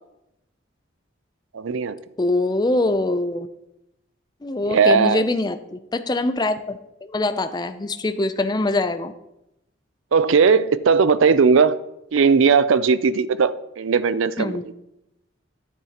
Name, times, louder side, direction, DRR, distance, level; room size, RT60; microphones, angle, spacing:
voice 1, 1.5-2.0 4.7-5.2 10.1-11.8 12.1-14.6, right 5 dB, 80° right, 0.5 m, -18 dB
voice 2, 2.2-3.5 4.4-6.6 7.0-9.1 14.4-14.6, left 2 dB, 20° left, 0.4 m, -23 dB
10.0 x 10.0 x 2.9 m
head